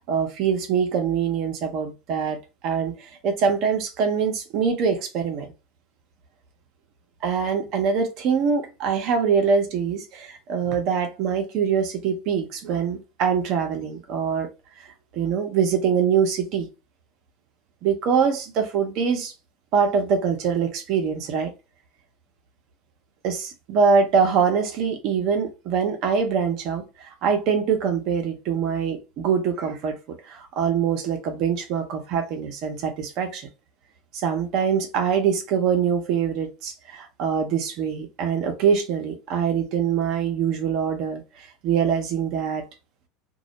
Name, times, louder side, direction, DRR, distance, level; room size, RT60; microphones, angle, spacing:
voice 1, 0.0-2.4 2.6-5.5 7.2-14.5 14.8-14.9 15.1-16.7 17.8-19.3 19.7-21.5 23.2-33.5 34.1-42.6, right 6 dB, 55° right, 0.7 m, -24 dB
2.3 x 2.0 x 2.8 m
hypercardioid pair, 85°, 0 cm